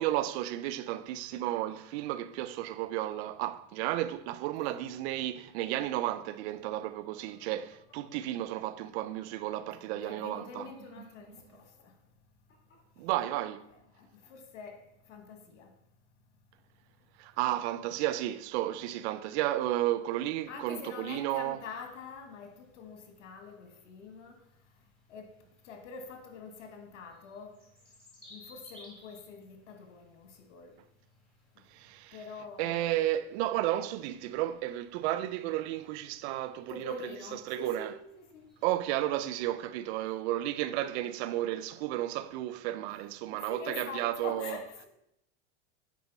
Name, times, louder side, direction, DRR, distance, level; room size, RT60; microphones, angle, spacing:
voice 1, 0.0-10.7 13.0-13.6 17.2-21.6 31.7-32.1 32.6-36.9 37.5-37.9 38.6-44.6, right 14 dB, 65° right, 0.7 m, -33 dB
sound 1, 5.2-8.6 8.9-14.3, left 5 dB, 35° left, 2.4 m, -65 dB
voice 2, 9.8-11.9 14.2-14.8 15.1-15.7 20.5-24.3 25.1-25.3 25.6-27.6 28.3-30.7 32.1-32.9 36.7-38.4 43.3-44.9, left 5 dB, 85° left, 1.9 m, -45 dB
sound 2, 19.4-38.8, left 1 dB, 5° left, 3.3 m, -63 dB
9.3 x 4.3 x 5.5 m
supercardioid pair, 120°, 36 cm